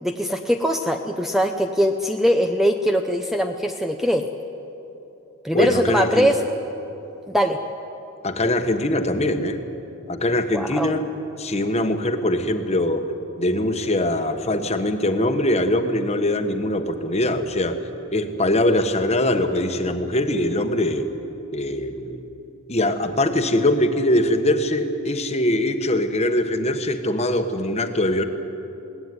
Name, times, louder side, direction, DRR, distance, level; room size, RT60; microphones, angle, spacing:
voice 1, 0.0-4.3 5.4-6.4 7.3-7.6 10.5-10.9, equal, ahead, 5 dB, 0.6 m, -21 dB
voice 2, 5.5-6.3 8.2-9.6 10.1-11.0 11.4-13.1 13.4-17.8 18.1-21.1 21.5-22.2 22.7-28.2, left 1 dB, 30° left, 7 dB, 1.2 m, -22 dB
21.0 x 17.5 x 9.6 m, 2.9 s
head